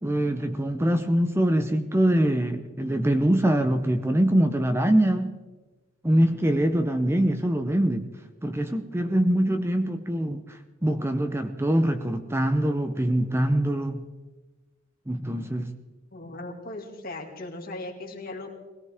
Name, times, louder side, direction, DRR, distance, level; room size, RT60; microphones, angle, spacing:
voice 1, 0.0-5.3 6.0-8.1 8.4-14.0 15.1-15.7, right 1 dB, 15° right, 8 dB, 0.7 m, -24 dB
voice 2, 16.1-18.5, left 2 dB, 50° left, 1 dB, 2.4 m, -38 dB
21.0 x 17.5 x 3.6 m, 1.2 s
head